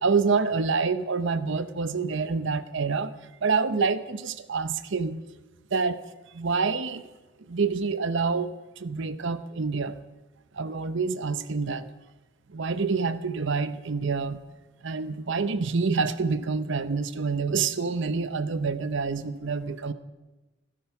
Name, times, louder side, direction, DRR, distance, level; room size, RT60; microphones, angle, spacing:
voice 1, 0.0-3.1 3.4-5.2 5.7-6.0 6.3-7.1 7.5-10.0 10.5-11.9 12.5-14.4 14.8-19.9, right 4 dB, 65° right, 13 dB, 0.8 m, -27 dB
15.0 x 13.0 x 5.9 m, 1.1 s
head